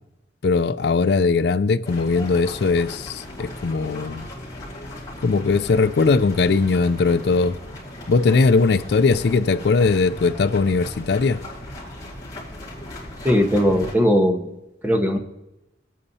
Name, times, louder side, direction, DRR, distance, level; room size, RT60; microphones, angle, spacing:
voice 1, 0.4-4.2 5.2-7.6 8.1-11.4, left 4 dB, 60° left, 0.4 m, -19 dB
sound 1, 1.8-14.0, left 1 dB, 20° left, 2.6 m, -37 dB
voice 2, 13.2-14.5 14.8-15.2, equal, 10° right, 1.1 m, -18 dB
19.5 x 8.4 x 2.8 m
head